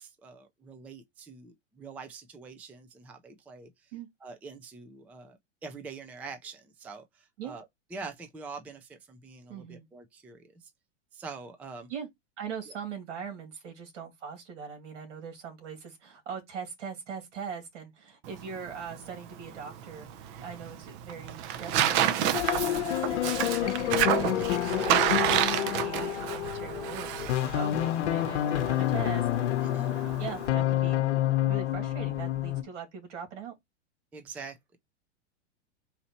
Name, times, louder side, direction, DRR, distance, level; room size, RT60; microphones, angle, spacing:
voice 1, 0.0-3.9 4.2-7.7 7.9-10.7 11.1-11.9 12.7-12.8 24.3-24.6 29.6-29.9 34.1-34.8, right 4 dB, 5° right, 0.3 m, -45 dB
voice 2, 9.5-9.9 11.9-12.1 12.4-29.5 30.2-31.1 31.4-33.5, right 6 dB, 75° right, 2.5 m, -41 dB
Tearing, 18.2-30.5, right 10 dB, 45° right, 0.7 m, -30 dB
sound 1, 22.3-32.6, left 13 dB, 70° left, 0.9 m, -28 dB
4.1 x 2.7 x 4.2 m
hypercardioid pair, 125°, 36 cm